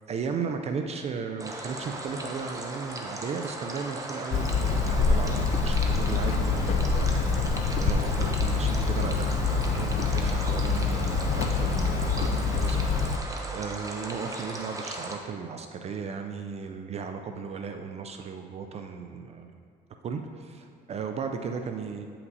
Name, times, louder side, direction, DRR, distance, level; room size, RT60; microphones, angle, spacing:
voice 1, 0.1-7.5 7.8-12.9 13.5-19.5 20.0-22.1, right 5 dB, 40° right, 5 dB, 0.4 m, -35 dB
sound 1, 1.4-15.2, right 2 dB, 20° right, 0.8 m, -37 dB
Hammer, 4.3-13.2, left 4 dB, 45° left, 0.4 m, -26 dB
9.3 x 5.7 x 2.7 m, 2.2 s
cardioid pair, 110°, 17 cm